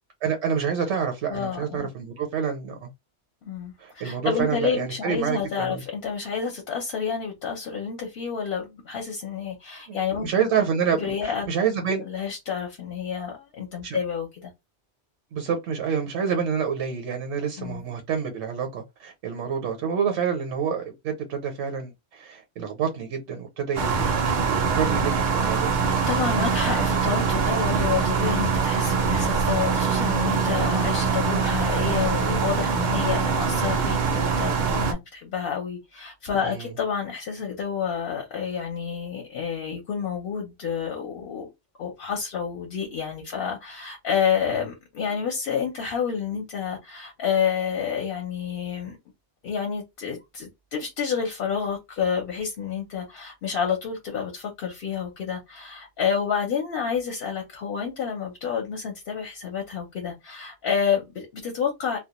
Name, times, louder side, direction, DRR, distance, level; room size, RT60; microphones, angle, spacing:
voice 1, 0.2-2.9 3.8-5.8 9.9-12.0 13.8-14.0 15.3-25.7 36.4-36.7, right 7 dB, 75° right, 0.9 m, -28 dB
voice 2, 1.3-1.9 3.4-10.3 10.9-11.5 12.1-14.5 17.6-17.8 26.1-41.5 41.8-49.0 49.4-62.0, left 7 dB, 60° left, 0.8 m, -29 dB
sound 1, 23.8-34.9, right 5 dB, 55° right, 0.5 m, -23 dB
2.2 x 2.2 x 2.9 m
omnidirectional pair, 1.2 m